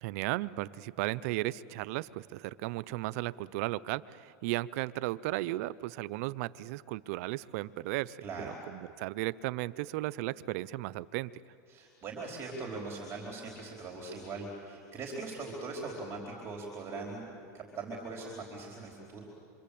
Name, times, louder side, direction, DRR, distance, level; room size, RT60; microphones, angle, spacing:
voice 1, 0.0-11.3, right 18 dB, 60° right, 17 dB, 0.6 m, -35 dB
voice 2, 8.2-8.5 11.7-19.2, right 3 dB, 25° right, -1 dB, 4.4 m, -41 dB
27.5 x 25.5 x 8.6 m, 2.4 s
supercardioid pair, 135°, 9 cm